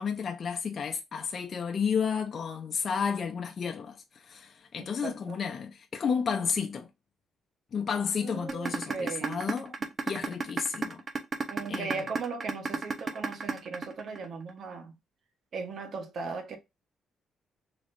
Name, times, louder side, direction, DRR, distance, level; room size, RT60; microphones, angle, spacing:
voice 1, 0.0-6.9 7.7-9.7 10.0-11.0 11.7-12.0, left 6 dB, 50° left, 0.8 m, -32 dB
voice 2, 4.8-5.4 8.2-9.5 9.8-9.9 11.5-14.9 15.5-16.6, right 4 dB, 60° right, 1.2 m, -38 dB
sound 1, 8.5-14.5, right 4 dB, 35° right, 0.8 m, -31 dB
4.1 x 3.2 x 2.6 m
cardioid pair, 90°, 0 cm